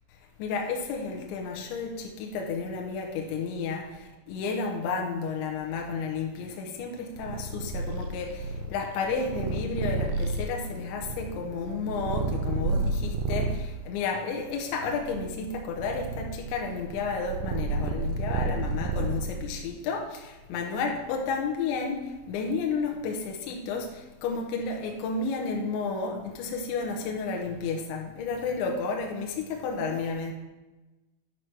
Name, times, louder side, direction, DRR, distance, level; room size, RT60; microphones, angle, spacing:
voice 1, 0.4-30.3, left 4 dB, 75° left, 1 dB, 3.1 m, -32 dB
Purr, 7.2-13.7 14.4-19.6, right 3 dB, 80° right, 2.9 m, -31 dB
11.0 x 4.8 x 6.0 m, 1.1 s
omnidirectional pair, 5.7 m